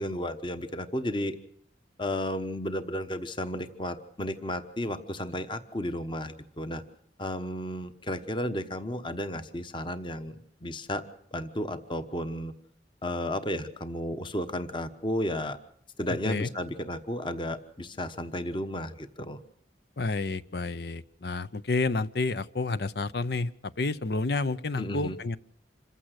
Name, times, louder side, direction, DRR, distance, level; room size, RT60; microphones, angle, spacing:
voice 1, 0.0-1.4 2.0-6.8 7.2-11.0 11.3-12.5 13.0-15.6 16.0-19.4 24.8-25.2, left 1 dB, 25° left, 10 dB, 1.1 m, -33 dB
voice 2, 20.0-23.5 23.8-25.4, left 3 dB, 65° left, 15 dB, 0.7 m, -30 dB
27.0 x 15.0 x 6.6 m, 0.69 s
head